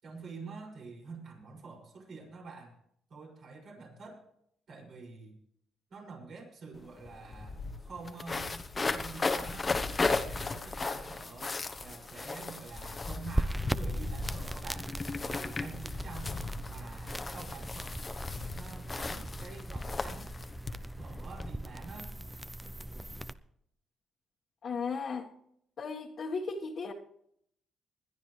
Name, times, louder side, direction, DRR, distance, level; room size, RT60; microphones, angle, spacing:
voice 1, 0.0-2.7 3.1-4.2 4.7-5.4 5.9-8.5 8.9-11.5 11.8-14.9 15.2-16.3 16.7-18.0 18.4-20.3 21.0-22.1, right 4 dB, 60° right, 0 dB, 6.5 m, -47 dB
sound 1, 6.7-6.8 7.1-21.5, left 3 dB, 30° left, 1.1 m, -36 dB
sound 2, 13.3-23.3, right 1 dB, 10° right, 0.7 m, -39 dB
voice 2, 24.6-25.3 25.8-26.9, left 4 dB, 55° left, -3 dB, 1.7 m, -35 dB
20.5 x 12.0 x 3.3 m, 0.70 s
cardioid pair, 90°, 0 cm